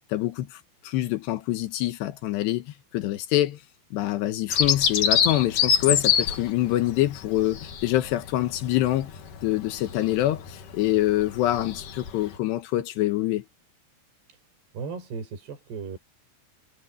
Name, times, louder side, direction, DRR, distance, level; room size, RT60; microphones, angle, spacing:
voice 1, 0.1-3.6 3.9-13.4, left 14 dB, 85° left, 3.3 m, -25 dB
Bird vocalization bird call bird song, 4.5-12.4, left 8 dB, 55° left, 3.4 m, -27 dB
voice 2, 14.7-16.0, right 5 dB, 70° right, 7.0 m, -36 dB
omnidirectional pair, 4.8 m